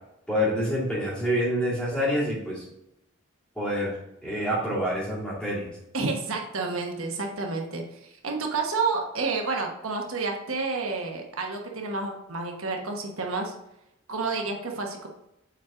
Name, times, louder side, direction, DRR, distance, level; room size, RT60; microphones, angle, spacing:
voice 1, 0.3-2.6 3.6-3.9 4.2-5.7, equal, 5° left, -8 dB, 2.5 m, -27 dB
voice 2, 5.9-13.5 14.1-15.1, right 4 dB, 85° right, 2 dB, 1.1 m, -30 dB
7.2 x 4.4 x 3.7 m, 0.84 s
head